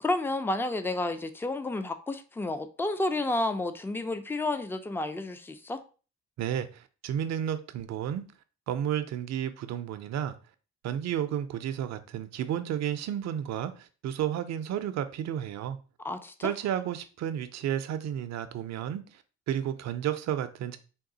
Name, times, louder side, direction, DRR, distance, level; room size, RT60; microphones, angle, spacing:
voice 1, 0.0-5.8 16.0-16.5, left 2 dB, 10° left, 0.3 m, -31 dB
voice 2, 6.4-8.2 8.7-10.3 10.8-15.8 16.4-19.2 19.5-20.8, right 10 dB, 60° right, 0.5 m, -32 dB
3.6 x 2.4 x 3.8 m
cardioid pair, 90°, 30 cm